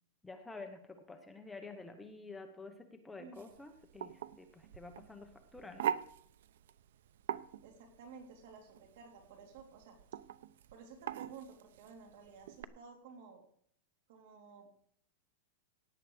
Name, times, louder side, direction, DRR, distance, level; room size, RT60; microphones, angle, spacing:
voice 1, 0.2-5.9, left 3 dB, 5° left, 5 dB, 1.0 m, -50 dB
sound 1, 3.3-12.6, right 9 dB, 70° right, 0.7 m, -43 dB
voice 2, 7.6-10.0 10.7-13.5 14.1-14.7, right 5 dB, 55° right, 3 dB, 3.5 m, -54 dB
17.0 x 9.8 x 4.9 m, 0.62 s
supercardioid pair, 170°, 0 cm